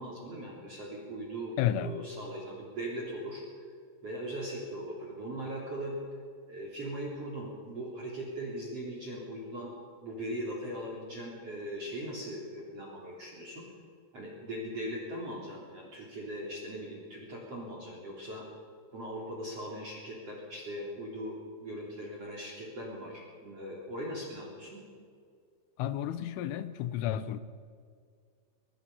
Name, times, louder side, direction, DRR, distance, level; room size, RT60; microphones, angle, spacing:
voice 1, 0.0-3.4 4.0-6.0 6.5-9.7 10.0-13.6 14.1-18.5 18.9-24.8, right 1 dB, 35° right, 4.0 m, -39 dB
voice 2, 1.6-2.1 25.8-27.4, left 10 dB, 80° left, 3.4 m, -32 dB
23.5 x 22.5 x 5.6 m
omnidirectional pair, 5.7 m